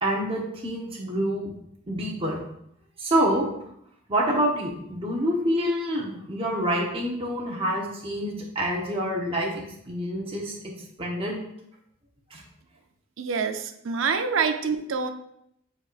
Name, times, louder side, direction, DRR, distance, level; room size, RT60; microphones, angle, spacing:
voice 1, 0.0-1.5 1.9-2.4 3.0-3.5 4.1-9.5 9.9-10.6 11.0-11.4 12.3-12.4, equal, 30° right, -2 dB, 1.0 m, -27 dB
voice 2, 13.2-15.1, right 5 dB, 85° right, 7 dB, 0.6 m, -26 dB
8.7 x 4.6 x 2.5 m, 0.75 s
head